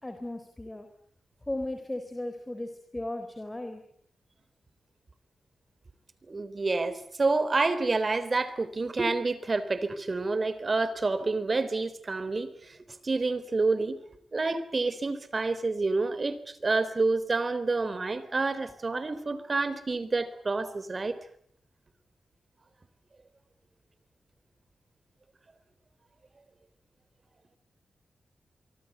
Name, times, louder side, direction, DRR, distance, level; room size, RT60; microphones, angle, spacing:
voice 1, 0.0-0.9 1.5-3.8, left 1 dB, 15° left, 3.9 m, -36 dB
voice 2, 6.3-12.8 13.0-14.0 14.3-21.2, right 3 dB, 40° right, 3.6 m, -28 dB
25.5 x 24.0 x 8.1 m
cardioid pair, 70°, 0 cm